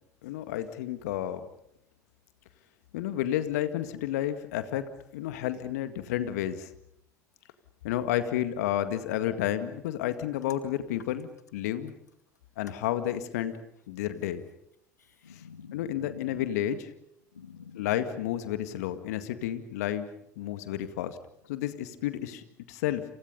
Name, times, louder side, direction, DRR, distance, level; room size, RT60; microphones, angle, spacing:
voice 1, 0.2-1.5 2.9-6.7 7.8-11.9 12.6-13.6 13.9-14.4 15.7-16.9 17.8-20.1 20.4-21.2 21.5-23.1, left 12 dB, 75° left, 10 dB, 2.0 m, -31 dB
voice 2, 15.0-16.7 17.3-17.9, left 6 dB, 90° left, 8 dB, 1.8 m, -47 dB
30.0 x 28.5 x 5.5 m, 0.72 s
hypercardioid pair, 65°, 9 cm